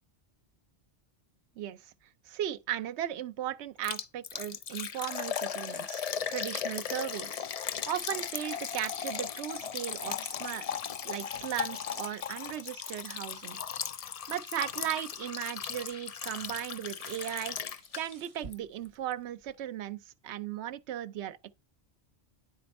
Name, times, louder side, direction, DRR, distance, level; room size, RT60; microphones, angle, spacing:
voice 1, 1.6-1.9 2.3-7.5 7.9-10.8 11.0-13.6 14.3-17.6 17.9-21.4, right 11 dB, 75° right, 0.9 m, -37 dB
Liquid, 3.8-18.3 18.5-18.6 19.1-19.2, left 8 dB, 60° left, 0.3 m, -37 dB
sound 1, 13.7-19.6, right 5 dB, 40° right, 0.5 m, -56 dB
10.5 x 4.3 x 4.1 m
omnidirectional pair, 1.1 m